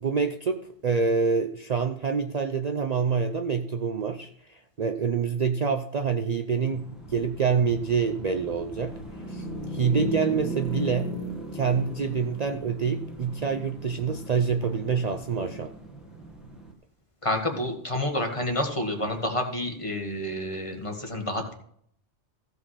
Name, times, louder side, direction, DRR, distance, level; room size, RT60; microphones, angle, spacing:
voice 1, 0.0-9.0 9.3-9.5 9.7-11.1 11.5-15.7, right 5 dB, 45° right, 7 dB, 0.6 m, -26 dB
sound 1, 6.7-16.7, right 1 dB, ahead, 1.6 m, -37 dB
voice 2, 17.2-21.5, left 1 dB, 30° left, 3 dB, 1.6 m, -29 dB
15.0 x 5.5 x 5.6 m, 0.66 s
omnidirectional pair, 1.1 m